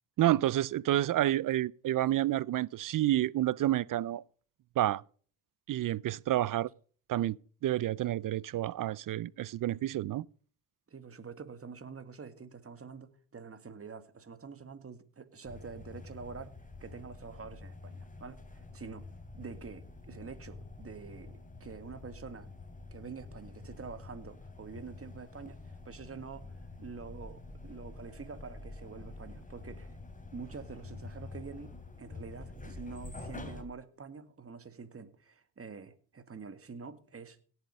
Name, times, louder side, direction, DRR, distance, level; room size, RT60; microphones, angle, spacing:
voice 1, 0.2-4.2 4.8-5.0 5.7-6.7 7.1-7.4 7.6-10.3, right 13 dB, 50° right, 0.5 m, -29 dB
voice 2, 10.9-19.1 19.3-22.5 22.9-30.0 30.3-37.4, right 5 dB, 30° right, 1.9 m, -47 dB
sound 1, 15.4-33.6, left 3 dB, 20° left, 3.3 m, -47 dB
17.5 x 7.9 x 5.3 m
supercardioid pair, 70°, 42 cm